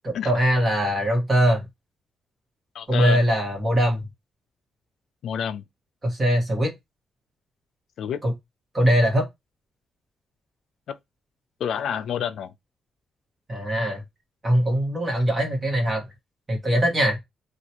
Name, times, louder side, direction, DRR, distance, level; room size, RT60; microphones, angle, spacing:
voice 1, 0.0-1.6 2.9-4.1 6.0-6.7 8.2-8.3 8.7-9.3 13.5-14.0 14.4-16.0 16.5-17.2, equal, 20° right, 1.3 m, -21 dB
voice 2, 2.7-3.2 5.2-5.6 8.0-8.2 10.9-11.0 11.6-12.5, left 8 dB, 70° left, 0.3 m, -28 dB
2.9 x 2.4 x 4.3 m
wide cardioid pair, 170°, 0 cm